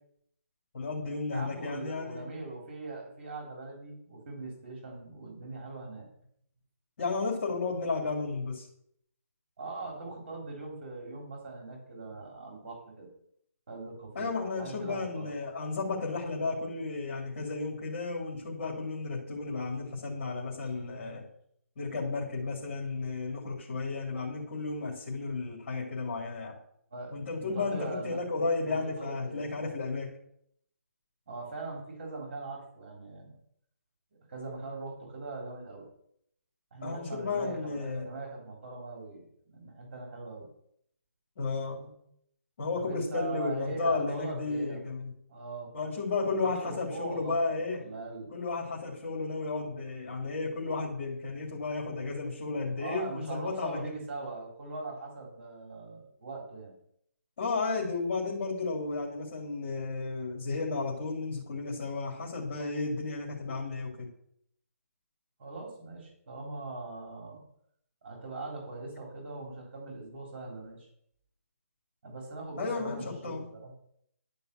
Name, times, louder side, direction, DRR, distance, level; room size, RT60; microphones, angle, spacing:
voice 1, 0.7-2.3 7.0-8.7 14.1-21.2 21.8-26.5 27.1-30.1 36.8-38.1 41.4-41.9 42.6-45.1 45.7-47.8 48.3-53.9 57.4-64.1 72.6-73.5, left 3 dB, 45° left, -4 dB, 3.2 m, -33 dB
voice 2, 1.3-6.1 9.6-13.1 13.7-14.3 14.6-15.3 20.6-21.1 26.9-28.2 28.6-29.5 31.3-33.4 34.3-35.9 36.7-40.5 42.7-44.8 45.3-45.7 46.4-48.3 52.8-56.7 65.4-67.4 68.0-70.9 72.0-73.8, right 3 dB, 45° right, 0 dB, 3.6 m, -41 dB
11.5 x 5.4 x 6.8 m, 0.71 s
hypercardioid pair, 160°, 8 cm